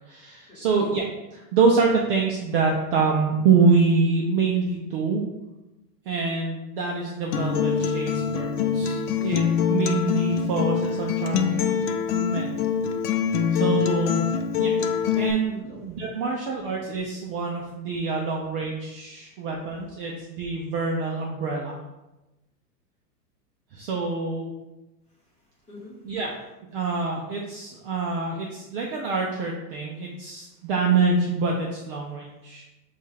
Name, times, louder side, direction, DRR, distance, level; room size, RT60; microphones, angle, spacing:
voice 1, 0.1-1.1 1.3-5.2 6.1-9.4 9.7-11.7 12.1-12.6 13.5-14.2 14.6-21.8 23.7-24.5 26.0-26.3 26.7-32.6, right 4 dB, 40° right, -1 dB, 0.4 m, -26 dB
Acoustic guitar, 7.3-15.3, left 7 dB, 65° left, 0.6 m, -24 dB
voice 2, 19.1-19.4 25.1-26.0 30.5-30.7, left 2 dB, 15° left, -6 dB, 1.2 m, -47 dB
5.2 x 2.4 x 3.2 m, 1.0 s
supercardioid pair, 145°, 49 cm